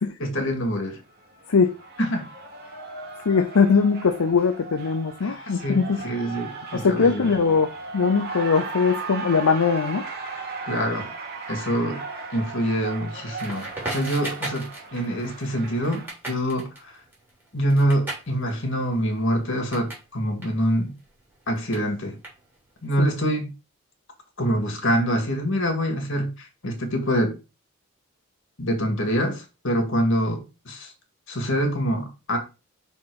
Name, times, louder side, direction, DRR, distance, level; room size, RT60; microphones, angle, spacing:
voice 1, 0.2-1.0 2.1-2.3 5.2-7.2 10.7-11.1 11.5-12.0 12.3-17.0 17.5-21.0 21.5-22.2 22.8-23.5 24.4-27.4 28.6-30.9 31.3-32.4, equal, 60° left, 2.0 m, -25 dB
Cheering, 0.9-16.1, right 4 dB, 50° right, 2.3 m, -37 dB
voice 2, 3.2-6.0 6.7-10.0 23.0-23.1, left 5 dB, 90° left, 0.6 m, -21 dB
Crackle, 13.4-20.1 20.3-22.8, right 2 dB, 10° right, 3.2 m, -38 dB
5.6 x 4.3 x 4.8 m
head